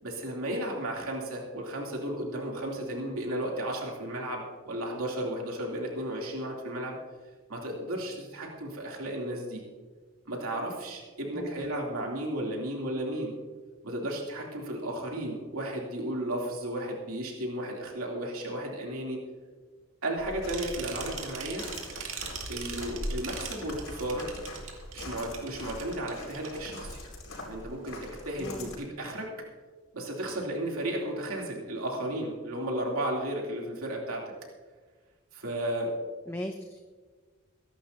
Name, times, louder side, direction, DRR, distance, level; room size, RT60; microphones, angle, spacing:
voice 1, 0.0-7.0 7.5-9.6 10.3-13.3 13.8-19.2 20.0-21.6 22.5-24.3 24.9-27.0 27.4-29.3 29.9-34.2 35.3-36.0, right 1 dB, 90° right, -1 dB, 2.9 m, -34 dB
Walk footsteps, 20.2-28.7, left 1 dB, 85° left, 5.0 m, -42 dB
sound 1, 20.5-26.6, right 7 dB, 70° right, 2.2 m, -40 dB
voice 2, 28.4-28.7 36.3-36.9, left 1 dB, 10° left, 4 dB, 0.7 m, -38 dB
23.5 x 11.5 x 2.8 m, 1.4 s
head